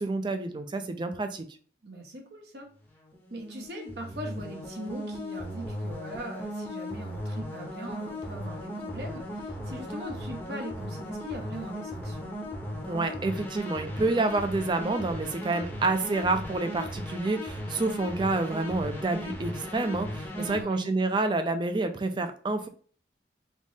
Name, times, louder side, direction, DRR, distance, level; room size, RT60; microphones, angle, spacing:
voice 1, 0.0-1.4 12.9-22.7, right 3 dB, 25° right, 8 dB, 0.4 m, -28 dB
voice 2, 1.8-2.7 3.3-12.3 20.4-20.9, right 1 dB, 65° right, 2 dB, 0.9 m, -41 dB
sound 1, 2.9-20.6, left 1 dB, 10° left, 0.7 m, -37 dB
3.5 x 3.1 x 2.7 m, 0.44 s
head